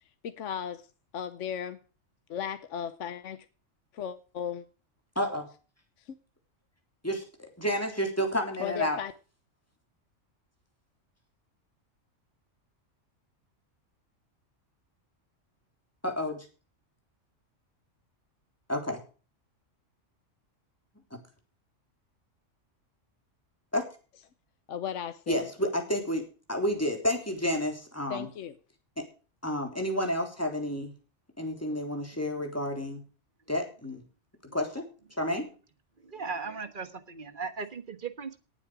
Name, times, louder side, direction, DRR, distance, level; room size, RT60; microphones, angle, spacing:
voice 1, 0.2-0.9 1.1-1.8 2.3-3.4 3.9-4.6 6.1-6.2 8.6-9.1 24.7-25.5 28.1-28.5, left 8 dB, 75° left, 1.2 m, -35 dB
voice 2, 5.2-5.5 7.0-9.0 16.0-16.5 18.7-19.0 21.1-21.2 23.7-23.9 25.3-26.2 26.5-28.3 29.4-30.9 31.4-33.0 33.5-34.0 34.5-34.8 35.2-35.4, equal, 10° left, 3.3 m, -30 dB
voice 3, 36.0-38.4, right 5 dB, 40° right, 1.5 m, -37 dB
18.5 x 7.6 x 5.0 m
omnidirectional pair, 1.3 m